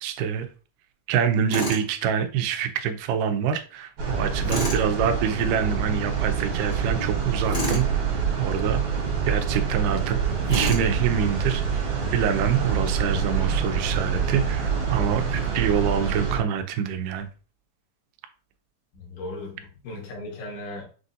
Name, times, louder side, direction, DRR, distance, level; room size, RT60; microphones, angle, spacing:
voice 1, 0.0-0.5 1.1-8.8 9.3-10.2 10.5-11.8 12.1-17.3, right 8 dB, 85° right, 9 dB, 2.2 m, -26 dB
Tools, 1.5-1.9 4.5-4.8 7.5-7.9 10.5-10.9, equal, 40° left, 0.8 m, -28 dB
sound 1, 4.0-16.4, right 6 dB, 65° right, 2.2 m, -26 dB
voice 2, 18.9-20.9, left 2 dB, 75° left, -1 dB, 2.8 m, -37 dB
6.1 x 2.6 x 2.6 m, 0.37 s
omnidirectional pair, 3.7 m